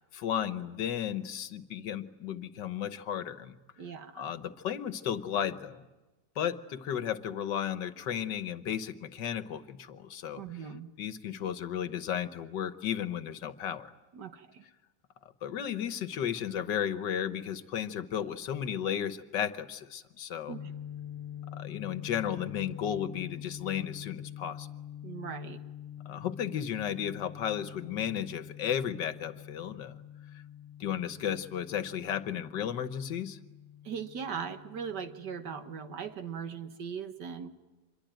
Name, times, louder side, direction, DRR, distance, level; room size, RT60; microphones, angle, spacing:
voice 1, 0.1-3.6 4.2-5.9 6.4-10.4 11.0-13.9 15.4-20.6 21.5-24.7 26.1-30.0 30.8-33.4, left 9 dB, 85° left, 11 dB, 1.8 m, -34 dB
voice 2, 3.8-4.3 10.4-10.9 14.1-14.6 20.5-20.7 25.0-25.6 33.8-37.5, right 7 dB, 75° right, 8 dB, 2.0 m, -39 dB
sound 1, 20.5-36.1, left 10 dB, ahead, 2.9 m, -46 dB
26.0 x 22.5 x 9.2 m, 1.1 s
omnidirectional pair, 1.9 m